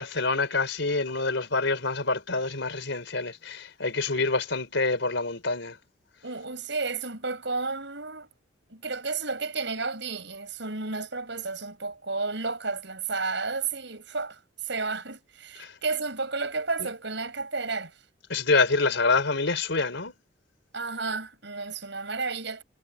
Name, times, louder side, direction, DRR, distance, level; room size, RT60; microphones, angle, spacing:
voice 1, 0.0-5.8 15.6-15.7 16.8-16.9 18.3-20.1, left 3 dB, 70° left, 4.1 m, -26 dB
voice 2, 6.2-8.3 8.7-17.9 20.7-22.6, right 4 dB, 65° right, 6.9 m, -32 dB
head